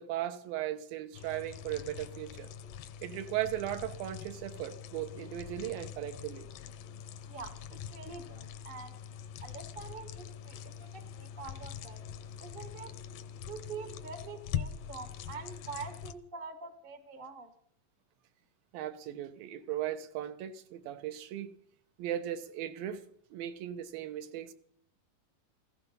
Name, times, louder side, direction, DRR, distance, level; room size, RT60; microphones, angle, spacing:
voice 1, 0.0-2.5 3.0-6.5 18.7-21.6 22.0-23.0 23.3-24.5, right 12 dB, 85° right, 2.8 m, -37 dB
sound 1, 1.1-16.1, left 9 dB, 75° left, 2.4 m, -43 dB
voice 2, 7.3-9.0 9.4-12.0 12.4-12.9 13.5-17.5, right 5 dB, 40° right, 0.7 m, -45 dB
15.5 x 15.5 x 5.6 m
omnidirectional pair, 4.0 m